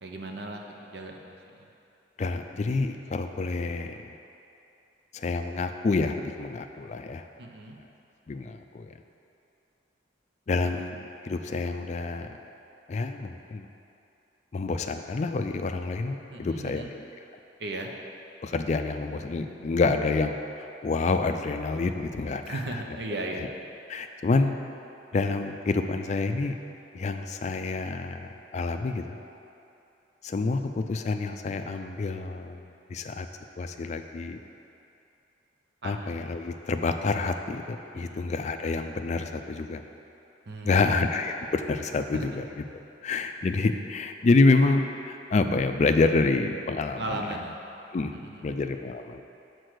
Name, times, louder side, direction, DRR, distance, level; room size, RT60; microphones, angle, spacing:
voice 1, 0.0-1.6 7.4-7.8 16.3-16.9 17.6-17.9 22.4-23.4 35.8-36.1 37.9-38.2 40.5-41.0 42.1-42.2 47.0-47.6 48.1-48.6, right 2 dB, 60° right, 1 dB, 0.7 m, -36 dB
voice 2, 2.2-4.2 5.1-7.3 8.3-8.9 10.5-12.4 12.9-13.7 14.5-16.8 18.4-22.8 23.4-23.5 23.9-24.5 25.1-26.5 26.9-29.2 30.2-33.3 33.6-34.4 35.8-39.8 40.6-42.6 43.0-47.3 47.9-48.1 48.4-49.2, left 3 dB, 40° left, 7 dB, 0.3 m, -28 dB
6.2 x 4.5 x 6.5 m, 2.7 s
head